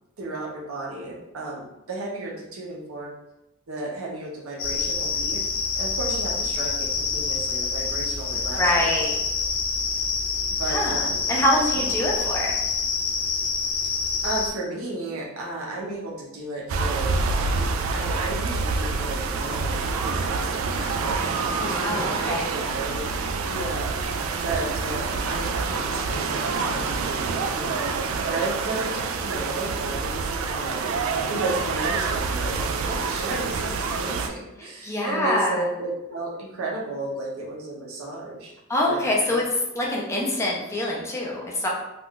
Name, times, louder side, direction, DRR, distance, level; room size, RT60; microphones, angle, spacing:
voice 1, 0.2-3.1 3.7-5.4 5.8-8.9 9.3-9.4 10.5-11.4 11.8-12.3 14.2-21.2 21.6-23.1 23.5-24.0 24.4-27.9 28.2-31.0 31.3-38.6 38.9-39.4, right 2 dB, 90° right, -2 dB, 0.8 m, -33 dB
sound 1, 4.6-14.5, left 4 dB, 65° left, 0.5 m, -27 dB
voice 2, 8.6-9.1 10.7-12.6 21.6-22.4 34.8-35.6 38.7-39.4 39.7-41.7, left 1 dB, 15° left, -3 dB, 0.5 m, -25 dB
sound 2, 16.7-34.3, right 4 dB, 70° right, 0.3 m, -27 dB
2.5 x 2.3 x 3.6 m, 0.90 s
head